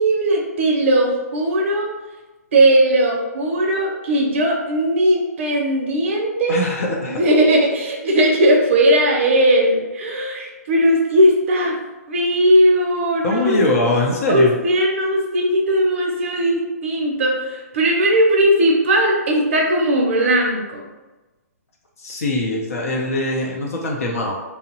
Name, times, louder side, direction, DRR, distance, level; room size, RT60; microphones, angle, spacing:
voice 1, 0.0-1.9 2.5-6.6 7.0-11.8 12.1-13.6 14.3-20.9, right 1 dB, 50° right, 0 dB, 0.6 m, -18 dB
voice 2, 6.5-7.2 13.2-14.5 22.0-24.3, left 2 dB, 60° left, -1 dB, 0.6 m, -22 dB
2.8 x 2.0 x 2.8 m, 1.2 s
hypercardioid pair, 150°, 9 cm